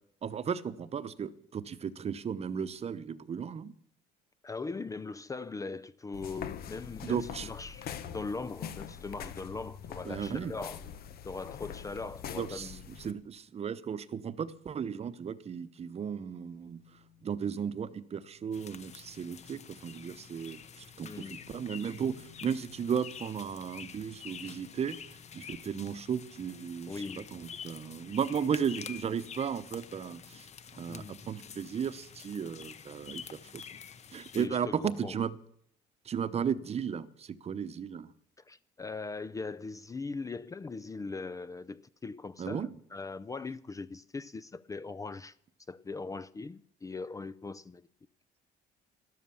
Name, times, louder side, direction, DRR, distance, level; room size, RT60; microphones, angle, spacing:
voice 1, 0.2-3.7 7.0-7.5 10.0-10.5 12.4-16.8 17.2-25.0 25.3-30.5 30.8-33.6 34.1-35.4 36.0-38.1 42.4-42.7, right 7 dB, 40° right, 0.9 m, -35 dB
voice 2, 4.4-10.8 11.2-12.8 21.0-21.4 26.9-27.4 30.9-31.3 34.4-35.2 38.4-45.3 45.7-47.9, left 4 dB, 20° left, 0.5 m, -40 dB
sound 1, 6.1-13.1, left 8 dB, 65° left, 1.2 m, -43 dB
sound 2, 16.6-26.2, left 11 dB, 90° left, 2.9 m, -62 dB
sound 3, 18.5-34.5, left 7 dB, 40° left, 1.0 m, -48 dB
13.0 x 12.5 x 7.1 m
cardioid pair, 110°, 17 cm